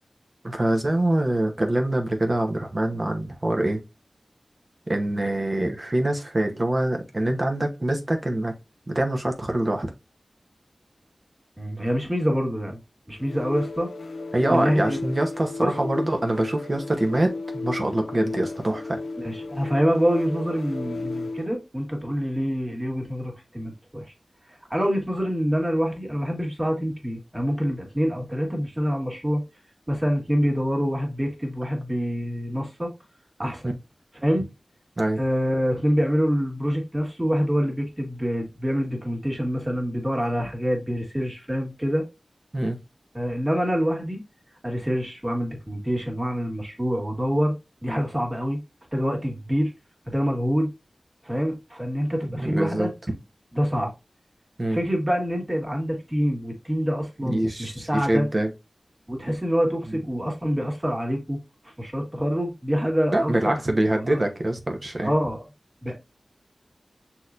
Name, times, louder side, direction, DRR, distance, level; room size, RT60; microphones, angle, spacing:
voice 1, 0.4-3.8 4.9-8.5 8.9-9.9 14.3-19.0 33.6-33.7 35.0-35.2 42.5-42.8 52.4-52.9 54.6-54.8 57.2-58.5 63.1-65.1, right 1 dB, 40° right, 1.0 m, -24 dB
voice 2, 11.6-12.8 13.1-13.9 14.5-15.0 15.6-15.7 19.2-24.1 24.7-29.4 29.9-32.9 33.4-33.8 34.2-34.5 35.2-42.0 43.1-44.2 44.6-47.5 47.8-48.6 48.9-49.7 50.1-50.7 51.2-52.9 53.5-53.9 54.7-58.3 59.1-61.4 61.8-63.6 64.1-64.2 65.0-65.4 65.8-66.0, equal, 20° right, 2.0 m, -26 dB
sound 1, 13.2-21.6, left 3 dB, 75° left, 0.6 m, -34 dB
6.3 x 2.9 x 2.5 m
wide cardioid pair, 65°, 0 cm